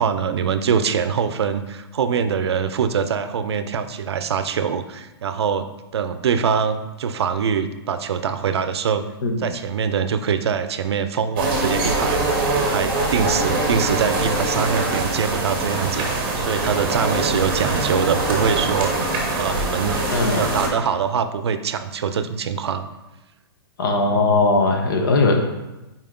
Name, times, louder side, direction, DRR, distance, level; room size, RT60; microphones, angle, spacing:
voice 1, 0.0-5.7 5.9-9.0 9.4-22.9, right 7 dB, 80° right, 10 dB, 0.5 m, -23 dB
sound 1, 11.4-20.7, right 2 dB, 25° right, 1.0 m, -23 dB
voice 2, 20.1-20.5 23.8-25.4, left 3 dB, 55° left, 3 dB, 1.0 m, -19 dB
5.6 x 4.5 x 3.7 m, 1.0 s
hypercardioid pair, 175°, 13 cm